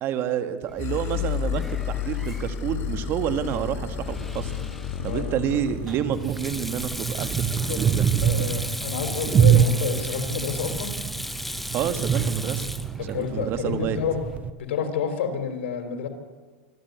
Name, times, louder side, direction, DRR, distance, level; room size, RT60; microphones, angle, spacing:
voice 1, 0.0-4.5 5.0-8.1 11.7-12.6 13.1-14.0, right 9 dB, 40° right, 10 dB, 1.7 m, -29 dB
Sink (filling or washing), 0.7-14.4, left 1 dB, ahead, 0.7 m, -37 dB
sound 1, 0.8-6.0, left 8 dB, 40° left, 1.9 m, -31 dB
voice 2, 5.0-5.5 7.7-7.8 8.2-10.9 13.0-14.2 14.6-16.1, left 7 dB, 80° left, 7 dB, 3.8 m, -29 dB
sound 2, 5.6-14.5, right 8 dB, 25° right, 1.0 m, -25 dB
25.0 x 13.5 x 9.4 m, 1.5 s
supercardioid pair, 140°, 6 cm